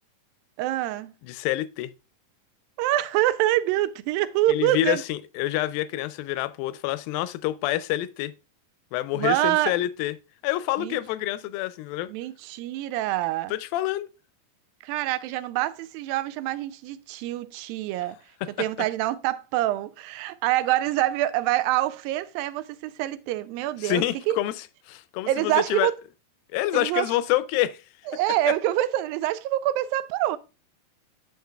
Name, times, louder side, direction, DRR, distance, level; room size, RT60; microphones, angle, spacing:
voice 1, 0.6-1.1 2.8-5.0 9.2-9.7 10.8-11.0 12.1-13.5 14.8-18.2 18.6-24.4 25.3-26.0 26.7-27.1 28.1-30.4, right 15 dB, 90° right, 2.3 m, -26 dB
voice 2, 1.2-1.9 4.5-8.3 8.9-10.2 10.4-12.1 13.5-14.1 18.4-18.5 23.8-25.9 26.5-27.8, left 15 dB, 90° left, 2.3 m, -27 dB
9.4 x 7.0 x 2.3 m
omnidirectional pair, 4.0 m